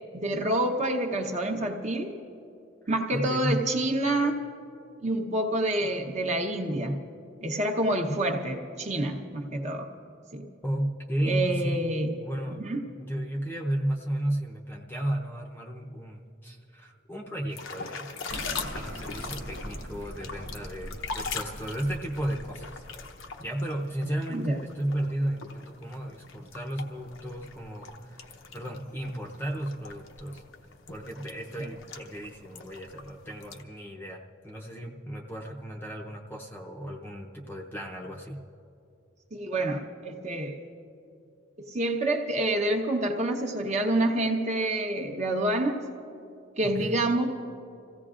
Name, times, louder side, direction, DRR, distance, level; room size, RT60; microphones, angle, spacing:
voice 1, 0.1-2.2 2.9-4.4 5.0-7.0 7.4-9.9 10.3-10.5 11.2-12.2 12.5-12.9 24.3-24.6 39.3-40.6 41.6-45.8 46.6-47.3, right 1 dB, 35° right, 2 dB, 0.9 m, -27 dB
voice 2, 3.1-3.6 10.6-11.9 12.2-12.6 13.0-22.8 23.4-30.4 30.9-38.4 46.6-47.1, right 1 dB, 10° left, -1 dB, 0.7 m, -34 dB
sound 1, 17.5-33.6, left 4 dB, 75° left, 0.9 m, -42 dB
sound 2, 18.3-23.5, right 1 dB, 65° right, 1.1 m, -42 dB
27.5 x 16.0 x 2.5 m, 2.6 s
head